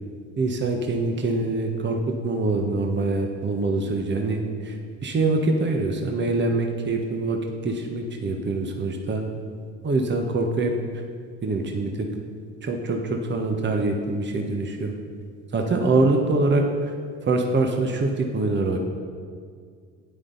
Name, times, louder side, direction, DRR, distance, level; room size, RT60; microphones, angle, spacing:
voice 1, 0.4-4.7 5.0-9.2 9.8-10.7 11.4-12.1 12.6-14.9 15.5-16.6 17.3-18.8, right 3 dB, 30° right, 3 dB, 1.3 m, -24 dB
13.0 x 9.3 x 4.1 m, 2.1 s
hypercardioid pair, 70°, 35 cm